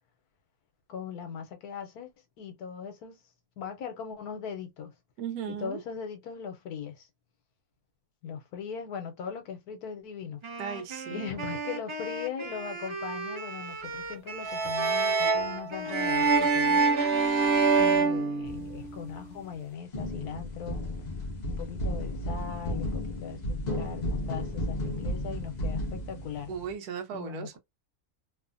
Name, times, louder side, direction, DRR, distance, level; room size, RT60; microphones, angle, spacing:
voice 1, 0.9-2.1 2.4-3.2 3.6-4.9 5.5-7.1 8.2-10.4 11.1-16.8 17.7-20.8 21.5-26.5 27.1-27.6, left 7 dB, 75° left, 1.2 m, -39 dB
voice 2, 5.2-5.8 10.6-11.2 26.5-27.6, right 7 dB, 80° right, 1.1 m, -36 dB
Wind instrument woodwind instrument, 10.4-18.6, right 3 dB, 35° right, 0.5 m, -39 dB
sound 1, 14.4-19.0, right 4 dB, 50° right, 0.9 m, -25 dB
sound 2, 18.4-19.5 19.9-26.7, left 1 dB, 60° left, 0.4 m, -34 dB
3.0 x 2.1 x 2.5 m
omnidirectional pair, 1.7 m